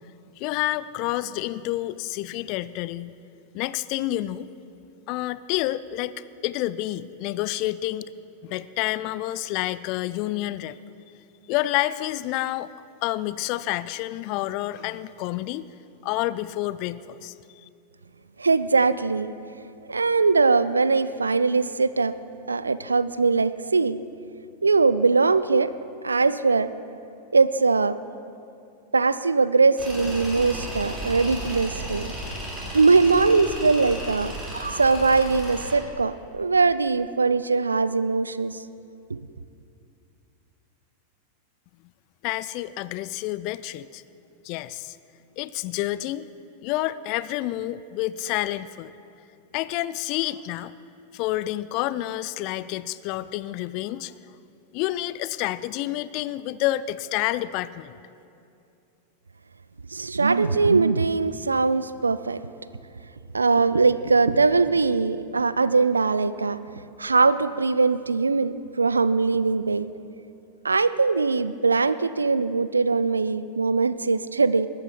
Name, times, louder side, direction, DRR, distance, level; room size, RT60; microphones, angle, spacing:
voice 1, 0.4-3.1 3.5-4.5 5.1-8.1 8.4-10.8 11.5-12.7 13.0-15.7 16.0-17.3 17.6-17.7 42.2-44.0 44.4-45.0 45.4-46.3 46.6-48.9 49.5-50.7 51.1-54.1 54.7-57.9, left 15 dB, 45° left, 16 dB, 0.4 m, -29 dB
voice 2, 18.4-19.3 19.9-22.1 22.5-24.0 24.6-25.7 26.0-26.7 27.3-28.0 28.9-32.1 32.7-38.6 39.1-39.2 59.9-62.4 63.3-66.6 67.0-69.9 70.6-74.7, right 4 dB, 75° right, 15 dB, 0.4 m, -21 dB
Tools, 29.8-35.8, right 1 dB, 20° right, 3.3 m, -34 dB
20.5 x 8.7 x 4.7 m, 2.6 s
figure-of-eight pair, 90°, 0 cm